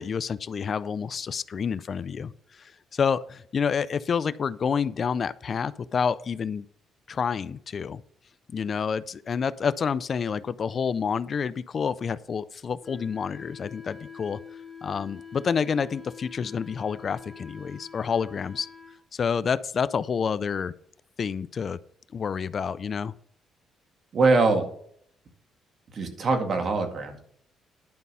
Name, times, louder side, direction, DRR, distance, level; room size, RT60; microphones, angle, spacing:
voice 1, 0.0-6.7 7.1-8.0 8.5-14.4 14.8-18.7 19.1-20.7 21.2-21.8 22.1-23.1, left 6 dB, 50° left, 17 dB, 0.4 m, -28 dB
Wind instrument woodwind instrument, 12.8-19.0, left 6 dB, 10° left, 2.9 m, -45 dB
voice 2, 24.1-24.7 25.9-27.2, right 3 dB, 50° right, 5 dB, 2.0 m, -23 dB
10.5 x 5.4 x 5.5 m, 0.64 s
cardioid pair, 90°, 0 cm